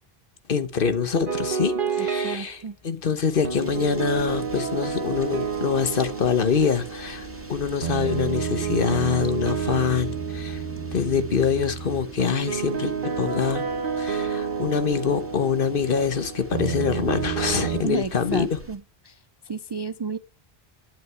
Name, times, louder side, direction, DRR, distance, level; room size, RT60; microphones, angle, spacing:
voice 1, 0.5-10.6 10.9-13.7 14.0-18.6, left 6 dB, 60° left, 1.2 m, -25 dB
sound 1, 1.3-2.5 3.4-17.8, right 6 dB, 55° right, 1.2 m, -29 dB
voice 2, 2.0-2.8 17.8-19.2 19.4-20.2, right 4 dB, 40° right, 0.3 m, -32 dB
sound 2, 3.5-18.8, equal, 10° right, 2.5 m, -45 dB
11.0 x 8.9 x 3.4 m
omnidirectional pair, 1.0 m